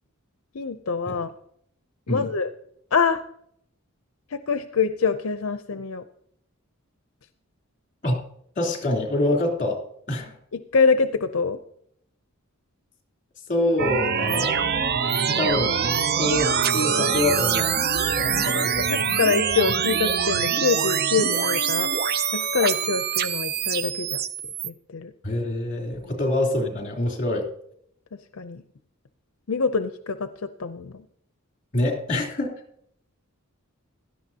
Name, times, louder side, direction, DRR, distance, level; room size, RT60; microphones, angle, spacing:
voice 1, 0.5-1.3 2.1-2.5 2.9-3.2 4.3-6.0 10.5-11.6 18.3-21.9 22.3-24.2 24.6-25.1 26.0-26.2 28.3-28.6 29.5-31.0, left 5 dB, 70° left, 9 dB, 0.6 m, -25 dB
voice 2, 8.5-10.4 13.5-14.5 15.1-17.7 18.2-18.7 25.2-27.5 31.7-32.6, left 1 dB, 35° left, 1 dB, 3.3 m, -26 dB
sound 1, 13.8-24.7, right 7 dB, 45° right, 0.6 m, -24 dB
16.5 x 12.5 x 2.8 m, 0.70 s
head